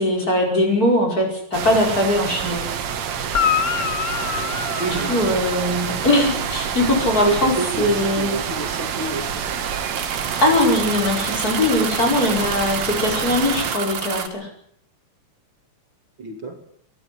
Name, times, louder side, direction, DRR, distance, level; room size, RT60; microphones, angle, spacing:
voice 1, 0.0-2.6 4.8-8.3 10.4-14.5, left 1 dB, 30° left, 2 dB, 6.0 m, -20 dB
sound 1, 1.5-13.8, right 8 dB, 70° right, 2.7 m, -28 dB
Guitar, 3.3-5.9 9.7-9.8, left 8 dB, 45° left, 1.5 m, -25 dB
sound 2, 4.0-14.3, right 6 dB, 85° right, 3.5 m, -32 dB
voice 2, 4.8-5.4 7.2-9.4 16.2-16.6, right 4 dB, 45° right, 3 dB, 3.0 m, -28 dB
23.5 x 12.5 x 10.0 m, 0.64 s
omnidirectional pair, 3.3 m